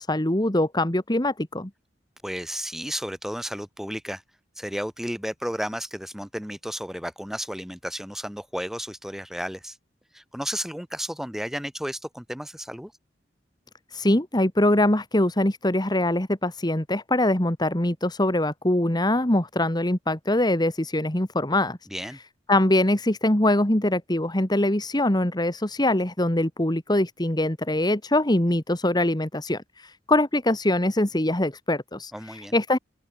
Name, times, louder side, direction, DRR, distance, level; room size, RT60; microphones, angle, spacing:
voice 1, 0.0-1.7 13.9-21.8 22.5-32.8, left 1 dB, 25° left, 2.1 m, -23 dB
voice 2, 2.2-4.2 4.6-9.8 10.1-12.9 21.9-22.2 32.1-32.6, equal, ahead, 5.2 m, -33 dB
open air
head